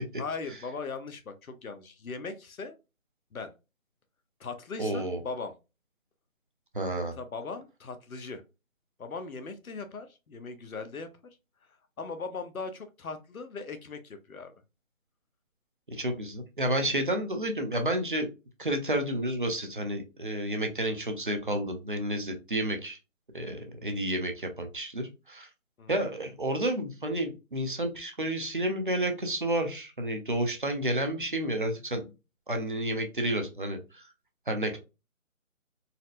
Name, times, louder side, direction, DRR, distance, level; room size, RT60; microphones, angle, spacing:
voice 1, 0.2-2.8 3.3-3.5 4.4-5.5 7.2-8.4 9.0-11.1 12.0-14.5 25.8-26.0, left 4 dB, 85° left, 9 dB, 0.9 m, -39 dB
voice 2, 4.8-5.2 6.7-7.1 15.9-18.3 18.6-23.0 23.3-25.5 25.9-32.0 32.5-34.1 34.5-34.8, right 1 dB, 40° right, 4 dB, 0.6 m, -30 dB
4.1 x 2.1 x 2.4 m, 0.27 s
figure-of-eight pair, 165°, 42 cm